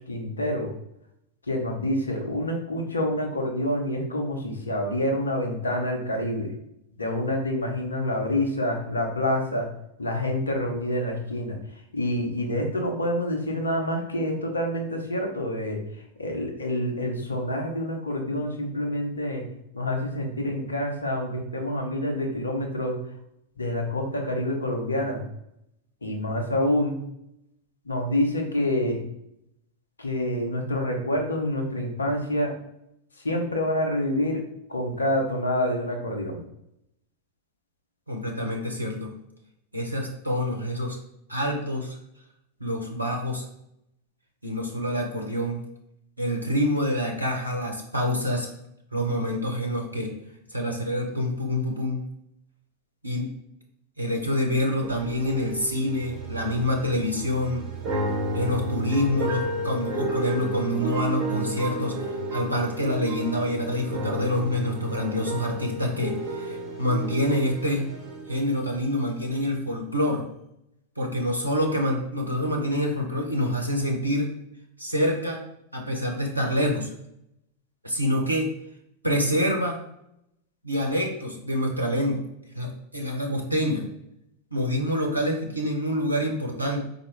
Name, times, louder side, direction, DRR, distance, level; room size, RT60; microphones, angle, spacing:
voice 1, 0.1-0.7 1.5-6.5 7.0-9.7 10.0-11.6 11.9-15.8 16.2-19.4 19.7-23.0 23.6-25.2 26.0-27.0 27.8-29.0 30.0-32.5 33.2-34.4 34.7-36.4, left 1 dB, 75° left, 2 dB, 0.8 m, -27 dB
voice 2, 38.1-39.1 39.7-41.0 41.3-42.0 42.6-43.5 44.4-45.6 46.2-48.5 48.9-50.1 50.5-52.0 53.0-53.3 54.0-57.7 58.3-67.8 68.3-70.2 71.0-74.3 74.8-75.4 75.7-76.9 77.8-78.5 79.0-79.8 80.6-82.2 82.5-83.8 84.5-86.8, equal, 85° right, 1 dB, 0.6 m, -26 dB
sound 1, 54.8-68.6 68.9-69.1, right 1 dB, 25° right, 1.3 m, -32 dB
4.2 x 2.2 x 3.2 m, 0.79 s
figure-of-eight pair, 90°, 0 cm